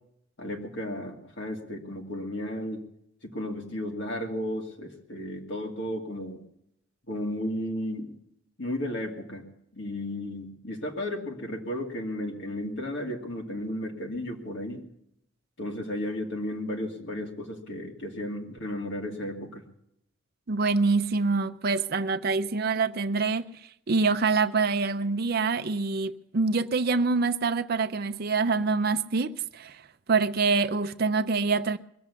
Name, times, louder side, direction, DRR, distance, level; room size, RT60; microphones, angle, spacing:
voice 1, 0.4-2.9 3.2-6.4 7.1-8.2 8.6-9.5 9.7-14.8 15.6-19.6, left 1 dB, 60° left, 2.5 m, -34 dB
voice 2, 20.5-29.8 30.1-31.8, right 4 dB, 50° right, 0.6 m, -26 dB
21.5 x 8.0 x 8.2 m
head